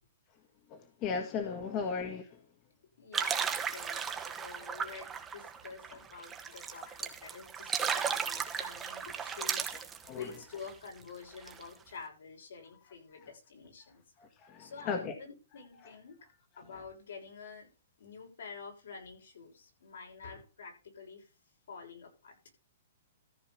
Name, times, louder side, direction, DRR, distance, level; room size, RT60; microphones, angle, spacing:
voice 1, 0.7-2.4 10.0-10.3 14.4-15.1, left 5 dB, 35° left, 1.7 m, -36 dB
voice 2, 3.0-14.0 14.6-16.2 16.6-17.7 18.0-21.3 21.7-22.4, left 5 dB, 80° left, 6.5 m, -48 dB
sound 1, 3.1-10.7 11.1-11.2 11.3-11.7, right 7 dB, 15° right, 1.2 m, -36 dB
14.0 x 5.5 x 5.8 m
hypercardioid pair, 145°, 0 cm